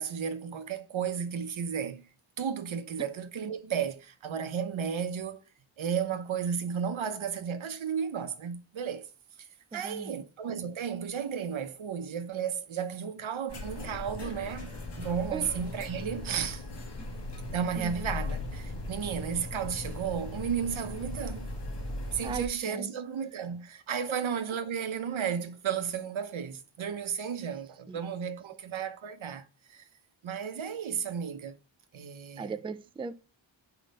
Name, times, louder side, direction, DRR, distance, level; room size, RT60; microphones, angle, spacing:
voice 1, 0.0-2.0 2.4-5.4 5.8-9.1 9.4-16.7 17.5-21.5 22.1-29.9 30.2-31.5 31.9-32.5, right 7 dB, 80° right, 0.9 m, -33 dB
voice 2, 9.7-10.2 15.3-15.5 17.8-17.9 22.2-22.9 27.9-28.3 32.4-33.1, right 4 dB, 15° right, 0.3 m, -38 dB
sound 1, 13.5-22.5, left 2 dB, 60° left, 1.8 m, -38 dB
5.2 x 4.9 x 5.4 m
wide cardioid pair, 120°, 46 cm